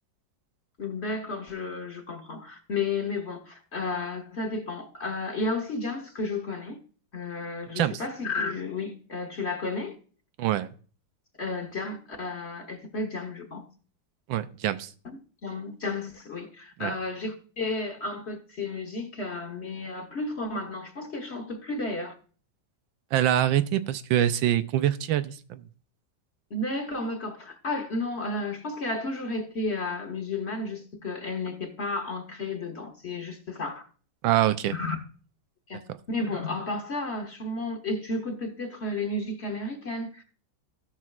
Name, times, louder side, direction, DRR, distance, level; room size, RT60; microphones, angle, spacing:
voice 1, 0.8-6.8 7.1-10.0 11.4-13.7 15.0-22.1 26.5-33.9 34.7-35.0 35.7-35.8 36.1-40.2, left 2 dB, 40° left, 1.2 m, -32 dB
voice 2, 10.4-10.7 14.3-14.9 16.8-16.9 23.1-25.6 34.2-34.7, right 12 dB, 90° right, 1.4 m, -25 dB
16.5 x 6.0 x 2.4 m
omnidirectional pair, 2.1 m